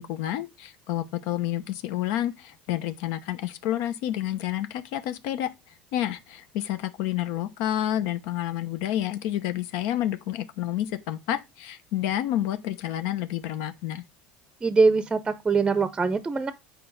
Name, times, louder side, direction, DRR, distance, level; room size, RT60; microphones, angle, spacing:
voice 1, 0.0-5.5 5.9-14.0, left 12 dB, 75° left, 0.9 m, -29 dB
voice 2, 14.6-16.5, right 4 dB, 15° right, 0.6 m, -22 dB
8.5 x 4.6 x 4.0 m
supercardioid pair, 125°, 4 cm